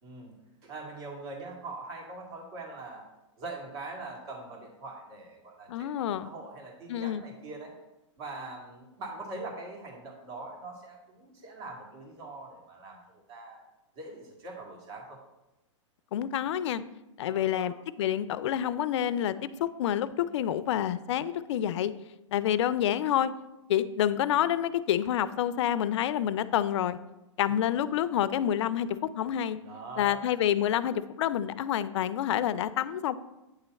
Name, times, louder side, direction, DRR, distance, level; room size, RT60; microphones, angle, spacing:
voice 1, 0.0-0.4 0.6-3.0 3.4-7.7 8.2-13.6 14.0-15.2 17.2-17.7 29.6-30.2, right 2 dB, 55° right, 0 dB, 2.1 m, -42 dB
voice 2, 5.7-6.3 6.9-7.2 16.1-16.8 17.2-21.9 22.3-23.3 23.7-27.0 27.4-29.6 30.0-33.1, left 10 dB, 65° left, 15 dB, 0.4 m, -28 dB
9.0 x 3.2 x 4.0 m, 0.98 s
hypercardioid pair, 130°, 16 cm